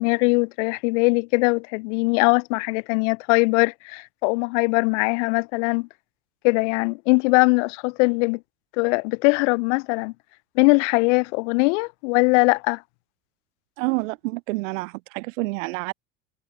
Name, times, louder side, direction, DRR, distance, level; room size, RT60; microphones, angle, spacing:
voice 1, 0.0-5.9 6.4-8.4 8.8-10.1 10.6-12.8, left 30 dB, 75° left, 0.6 m, -21 dB
voice 2, 13.8-15.9, right 24 dB, 80° right, 0.5 m, -28 dB
supercardioid pair, 100°, 37 cm